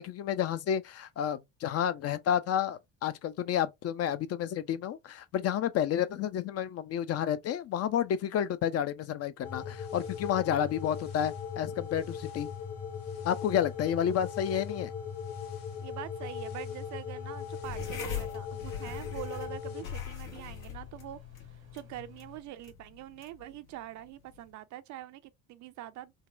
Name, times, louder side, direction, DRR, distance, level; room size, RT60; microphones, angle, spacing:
voice 1, 0.0-12.5 13.2-14.9, left 9 dB, 40° left, 0.4 m, -30 dB
sound 1, 9.4-19.8, left 7 dB, 60° left, 1.6 m, -39 dB
sound 2, 9.4-22.4, left 8 dB, 85° right, 1.2 m, -53 dB
voice 2, 15.8-21.2 21.7-26.1, right 13 dB, 45° right, 0.5 m, -44 dB
sound 3, 17.6-24.5, left 9 dB, 80° left, 1.1 m, -43 dB
4.0 x 2.1 x 2.4 m
hypercardioid pair, 60°, 40 cm